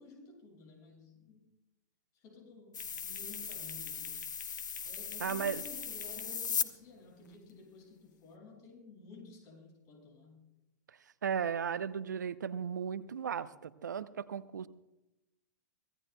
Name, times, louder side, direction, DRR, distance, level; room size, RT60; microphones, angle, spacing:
voice 1, 0.0-1.5 2.1-4.2 4.8-10.5, left 3 dB, 35° left, 2 dB, 5.9 m, -53 dB
sound 1, 2.7-6.6, left 7 dB, 80° left, 0.9 m, -38 dB
voice 2, 5.2-5.6 11.2-14.7, right 7 dB, 75° right, 15 dB, 0.7 m, -35 dB
24.5 x 17.5 x 2.2 m, 0.92 s
hypercardioid pair, 110°, 10 cm